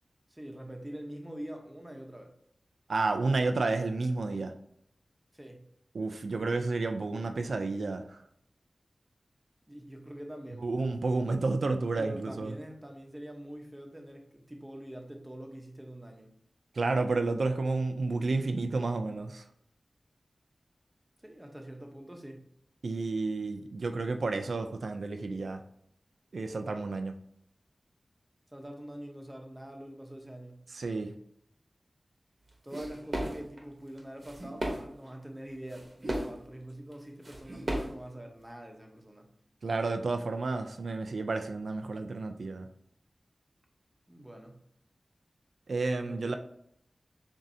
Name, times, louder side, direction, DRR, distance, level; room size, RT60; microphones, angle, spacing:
voice 1, 0.3-2.3 5.3-5.7 9.7-10.7 12.0-16.3 21.2-22.5 28.5-30.6 32.6-39.3 44.1-44.6 46.0-46.4, right 1 dB, 15° right, 2 dB, 0.8 m, -44 dB
voice 2, 2.9-4.5 5.9-8.2 10.6-12.5 16.8-19.4 22.8-25.6 26.3-27.1 30.7-31.1 39.6-42.7 45.7-46.4, right 3 dB, 85° right, 6 dB, 0.3 m, -31 dB
sound 1, 32.7-33.6 34.0-34.9 35.1-35.2 35.7-36.4 36.9-37.0 37.2-38.0, right 1 dB, 45° right, 0.9 m, -35 dB
7.1 x 2.6 x 2.7 m, 0.71 s
wide cardioid pair, 95°, 0 cm